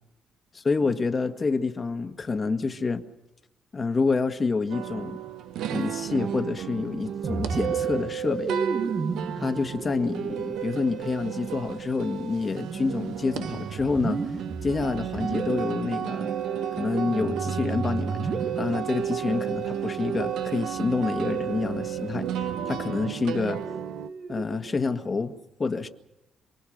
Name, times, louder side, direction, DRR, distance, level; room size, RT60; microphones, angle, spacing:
voice 1, 0.6-3.0 3.7-5.2 5.7-8.5 9.4-14.2 14.6-16.3 16.7-23.6 24.3-25.9, left 4 dB, 35° left, 6 dB, 1.8 m, -28 dB
sound 1, 4.7-24.1, right 9 dB, 80° right, 0.9 m, -34 dB
Musical instrument, 7.2-24.8, right 6 dB, 50° right, 1.1 m, -34 dB
27.5 x 20.0 x 6.6 m, 0.95 s
cardioid pair, 90°, 0 cm